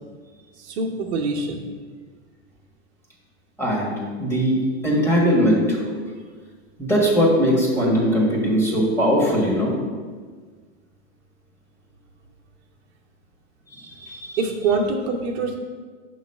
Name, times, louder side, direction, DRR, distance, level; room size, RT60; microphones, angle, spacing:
voice 1, 0.6-1.7 14.4-15.6, right 3 dB, 65° right, 0 dB, 0.9 m, -24 dB
voice 2, 3.6-6.0 6.8-9.8 13.7-14.4, equal, 5° left, -4 dB, 1.4 m, -20 dB
6.4 x 3.1 x 5.3 m, 1.5 s
hypercardioid pair, 125°, 36 cm